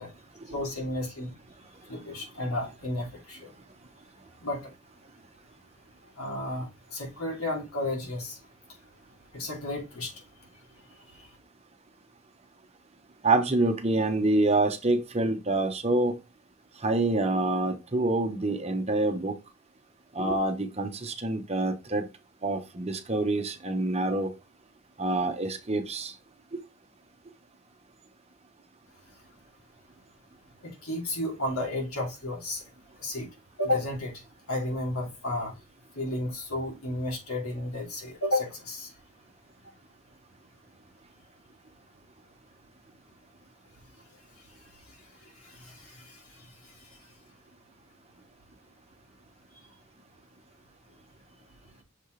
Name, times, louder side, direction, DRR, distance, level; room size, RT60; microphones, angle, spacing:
voice 1, 0.5-1.3 1.9-3.5 4.4-4.6 6.2-8.4 9.3-10.1 30.6-32.6 33.0-33.3 33.6-34.1 34.5-35.5 35.9-38.9 45.4-46.2, left 1 dB, 85° left, 3.0 m, -32 dB
voice 2, 13.2-16.1 16.8-19.4 20.1-22.1 22.4-24.3 25.0-26.1 26.5-26.6, right 2 dB, 30° right, 1.0 m, -26 dB
6.7 x 4.3 x 3.3 m
head